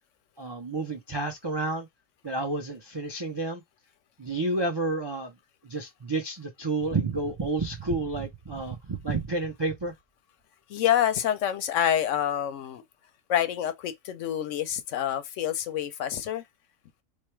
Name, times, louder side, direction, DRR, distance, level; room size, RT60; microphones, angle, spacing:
voice 1, 0.4-1.9 2.2-3.6 4.2-5.3 5.6-9.9, right 3 dB, 40° right, 0.3 m, -30 dB
voice 2, 10.7-12.8 13.3-16.4, left 10 dB, 70° left, 0.8 m, -27 dB
3.2 x 2.3 x 4.3 m
omnidirectional pair, 1.5 m